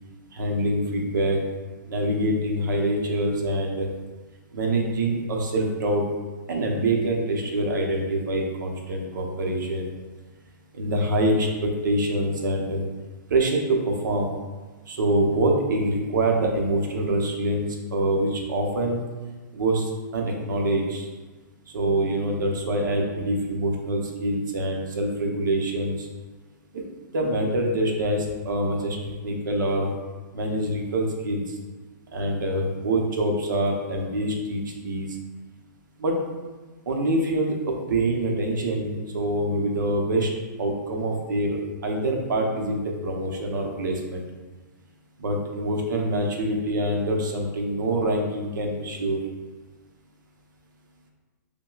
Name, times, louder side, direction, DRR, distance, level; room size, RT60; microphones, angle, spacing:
voice 1, 0.3-1.4 1.8-3.9 4.5-6.0 6.5-9.9 10.7-12.8 13.3-14.3 14.9-19.0 19.5-21.1 21.7-26.1 26.7-26.8 27.1-29.9 30.3-31.6 32.1-35.1 36.0-36.2 36.9-40.3 40.6-44.2 45.2-49.2, right 1 dB, 80° right, 1 dB, 0.7 m, -25 dB
5.8 x 2.2 x 2.3 m, 1.3 s
hypercardioid pair, 170°, 10 cm